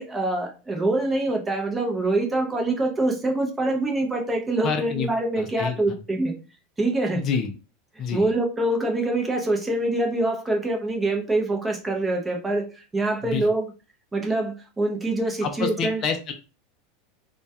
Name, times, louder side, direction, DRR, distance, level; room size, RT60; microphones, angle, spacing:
voice 1, 0.0-6.3 6.8-7.2 8.1-13.6 14.1-16.0, right 2 dB, 15° right, 2 dB, 0.6 m, -25 dB
voice 2, 4.6-5.1 5.4-6.0 7.1-7.5 8.0-8.3 13.2-13.5 15.4-16.3, left 6 dB, 40° left, 6 dB, 0.4 m, -28 dB
2.2 x 2.1 x 2.7 m, 0.33 s
supercardioid pair, 120°, 0 cm